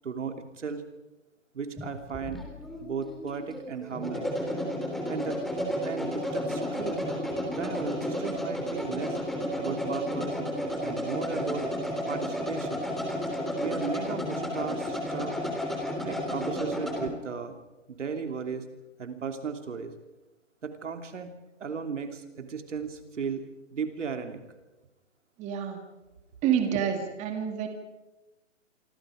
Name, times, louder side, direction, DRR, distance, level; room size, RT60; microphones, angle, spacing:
voice 1, 0.0-0.8 1.5-2.4 2.8-4.3 5.1-5.4 5.8-7.0 7.4-9.2 9.5-10.4 10.8-11.6 12.1-12.9 13.6-15.3 16.0-17.5 17.9-18.7 19.0-19.9 20.6-21.3 21.6-23.4 23.7-24.4, right 5 dB, 70° right, 6 dB, 3.2 m, -35 dB
sound 1, 1.8-17.1, equal, ahead, 3.6 m, -32 dB
voice 2, 25.4-25.8 26.4-27.7, right 8 dB, 20° right, 5 dB, 2.6 m, -28 dB
26.5 x 25.5 x 5.1 m, 1.0 s
hypercardioid pair, 145°, 37 cm